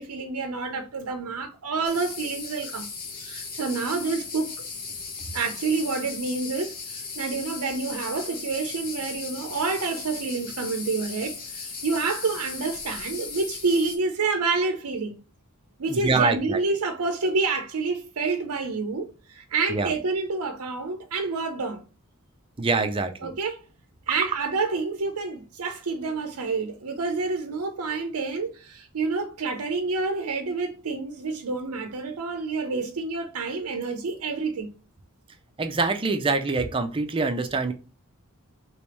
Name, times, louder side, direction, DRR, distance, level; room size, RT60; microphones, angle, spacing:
voice 1, 0.0-2.9 3.2-4.5 5.3-15.2 15.8-21.8 23.2-23.6 24.1-34.7, right 4 dB, 75° right, 0.6 m, -28 dB
sound 1, 1.8-14.0, left 5 dB, 45° left, 0.9 m, -37 dB
voice 2, 15.9-16.6 19.7-19.9 22.6-23.3 35.6-37.7, right 3 dB, 25° right, 0.5 m, -25 dB
3.3 x 3.1 x 3.0 m
head